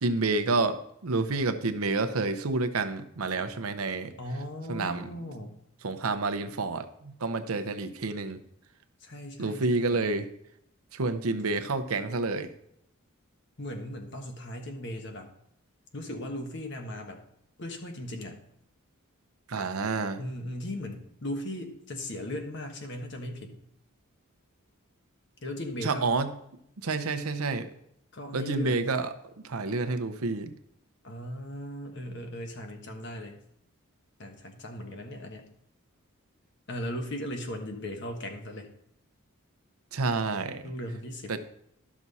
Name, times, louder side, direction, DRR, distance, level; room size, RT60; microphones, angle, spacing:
voice 1, 0.0-4.1 4.7-5.1 5.8-8.4 9.4-10.3 10.9-12.5 19.5-20.2 25.8-26.3 26.8-27.7 28.3-29.1 29.4-30.5 39.9-40.6 41.3-41.4, right 3 dB, 85° right, 10 dB, 0.8 m, -29 dB
voice 2, 4.2-5.6 9.0-10.0 13.6-15.3 15.9-17.2 17.6-18.4 20.2-23.6 25.4-26.1 28.1-28.8 31.0-33.4 34.2-35.5 36.7-38.7 40.6-41.3, left 1 dB, 55° left, 4 dB, 1.3 m, -37 dB
12.0 x 6.1 x 4.1 m, 0.74 s
head